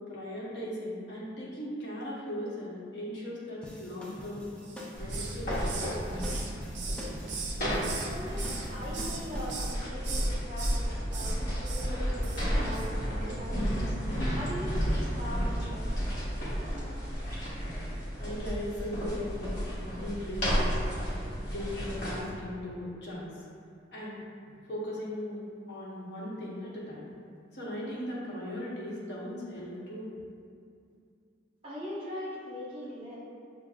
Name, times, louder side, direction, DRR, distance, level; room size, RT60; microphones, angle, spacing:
voice 1, 0.1-4.5 5.0-5.7 18.2-19.6 19.9-20.7 21.4-23.3 23.9-24.2 24.7-27.1 27.5-30.1, left 1 dB, 65° left, -7 dB, 1.0 m, -38 dB
sound 1, 3.6-9.5, left 1 dB, 5° left, 0.3 m, -44 dB
Hiss, 4.6-5.4 5.7-8.1 8.4-9.2 9.5-9.8 10.0-10.8 11.1-11.4 11.6-11.9 12.2-12.5 12.7-12.9, right 5 dB, 75° right, 0.5 m, -39 dB
sound 2, 5.0-22.2, equal, 45° left, 1.1 m, -32 dB
voice 2, 8.1-13.7 14.3-16.0 31.6-33.2, equal, 30° right, -8 dB, 1.1 m, -41 dB
6.2 x 2.1 x 2.4 m, 2.4 s
head